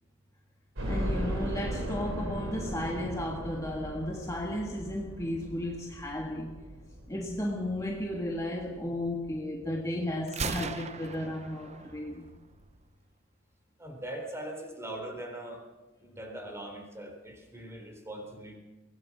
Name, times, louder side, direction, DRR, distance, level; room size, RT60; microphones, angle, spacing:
voice 1, 0.8-6.5 7.1-12.3, left 1 dB, 15° left, 1.7 m, -34 dB
sound 1, 0.8-9.7 10.1-10.2 10.6-10.7 11.9-12.0 12.3-12.4, equal, 65° right, 5.0 m, -37 dB
Gunshot gunfire, 10.3-12.2, right 5 dB, 30° right, 0.7 m, -37 dB
voice 2, 13.8-15.6 16.0-18.5, right 1 dB, 15° right, 3.9 m, -41 dB
23.0 x 18.5 x 6.1 m
head